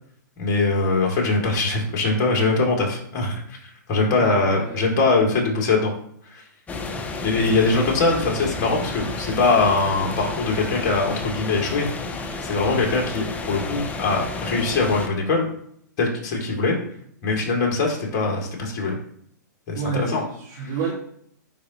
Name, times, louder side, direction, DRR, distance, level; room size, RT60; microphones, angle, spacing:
voice 1, 0.4-3.4 3.9-5.9 7.2-11.9 12.4-15.5 16.0-16.8 17.2-18.9 19.7-20.2 20.6-20.7, left 3 dB, 35° left, 0 dB, 2.2 m, -22 dB
voice 2, 4.2-4.9 19.7-20.9, right 4 dB, 50° right, -5 dB, 2.0 m, -29 dB
sound 1, 6.7-15.1, left 3 dB, 15° left, 0.6 m, -31 dB
9.6 x 3.6 x 2.9 m, 0.66 s
hypercardioid pair, 130°, 10 cm